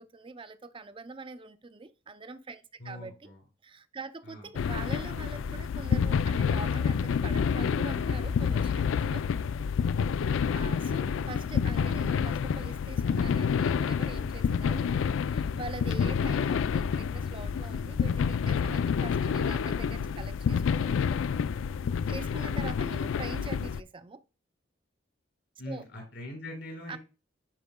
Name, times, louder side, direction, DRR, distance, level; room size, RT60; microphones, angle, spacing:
voice 1, 0.0-3.3 3.6-9.3 10.5-14.9 15.3-21.1 22.1-24.2 25.7-25.9 26.9-27.0, right 3 dB, 25° right, 0.5 m, -44 dB
voice 2, 2.8-3.4 4.3-4.4 25.6-27.0, left 1 dB, 70° left, 3.8 m, -43 dB
sound 1, 4.6-23.8, left 6 dB, 85° left, 0.3 m, -28 dB
10.5 x 4.7 x 2.2 m
head